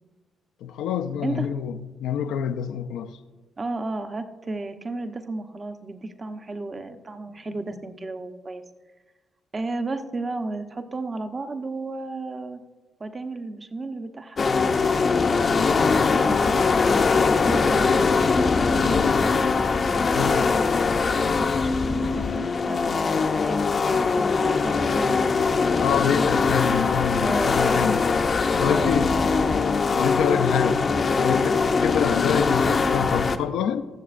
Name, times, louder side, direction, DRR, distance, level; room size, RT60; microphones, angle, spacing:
voice 1, 0.6-3.1 20.1-20.4 25.8-28.0 28.6-29.1 29.9-30.9 31.1-33.9, left 8 dB, 80° left, 0.5 m, -26 dB
voice 2, 3.6-8.6 9.5-12.6 13.0-14.5 15.2-19.4 20.1-20.9 21.1-25.6 27.2-27.9 28.6-29.4 31.5-31.8, right 3 dB, 35° right, 0.9 m, -34 dB
sound 1, 14.4-33.4, left 4 dB, 45° left, 0.7 m, -22 dB
21.5 x 7.2 x 2.5 m
supercardioid pair, 65°, 0 cm